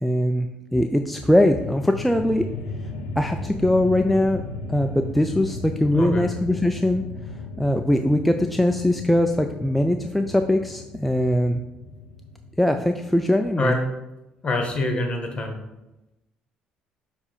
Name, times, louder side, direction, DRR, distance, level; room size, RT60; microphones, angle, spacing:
voice 1, 0.0-2.5 3.2-4.4 4.7-7.0 7.6-11.6 12.6-13.8, left 1 dB, ahead, 5 dB, 0.3 m, -21 dB
sound 1, 0.9-13.2, left 3 dB, 90° left, 0.7 m, -36 dB
voice 2, 5.9-6.2 13.6-13.8 14.4-15.6, left 2 dB, 30° left, 3 dB, 1.4 m, -25 dB
7.0 x 2.7 x 5.0 m, 0.97 s
supercardioid pair, 75°, 3 cm